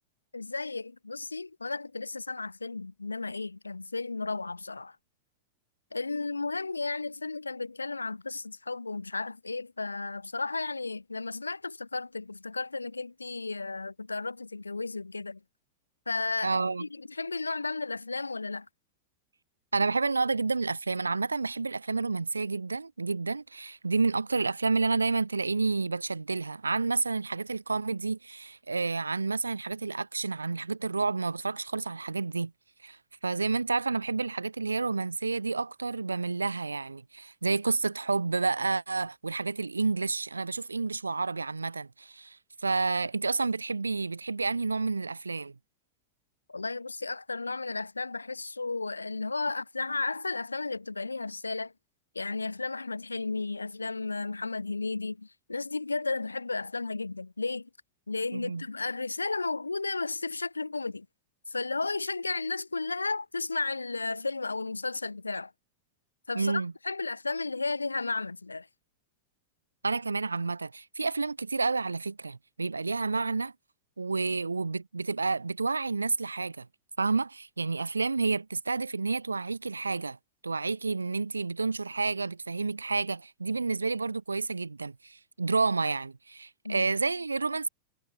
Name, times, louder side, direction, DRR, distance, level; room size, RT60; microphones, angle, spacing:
voice 1, 0.3-4.9 5.9-15.4 16.1-18.7 46.5-51.7 52.1-57.7 58.1-61.1 61.5-65.5 66.3-68.7 86.6-86.9, left 3 dB, 80° left, 1.5 m, -33 dB
voice 2, 16.4-16.9 19.7-32.5 32.8-33.0 33.2-45.5 58.3-58.6 66.3-66.7 69.8-73.5 74.0-76.7 77.0-80.2 80.4-87.7, right 4 dB, 80° right, 0.5 m, -30 dB
figure-of-eight pair, 90°, 0 cm